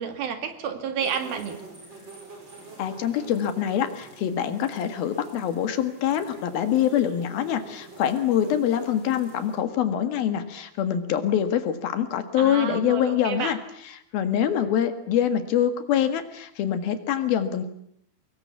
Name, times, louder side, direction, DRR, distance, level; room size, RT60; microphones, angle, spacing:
voice 1, 0.0-1.6 12.4-13.6, right 7 dB, 75° right, 7 dB, 4.0 m, -30 dB
sound 1, 1.0-9.6, right 3 dB, 30° right, 6.1 m, -46 dB
voice 2, 2.8-13.6 14.1-17.7, left 9 dB, 75° left, 9 dB, 3.6 m, -25 dB
24.5 x 21.0 x 8.4 m, 0.70 s
omnidirectional pair, 4.3 m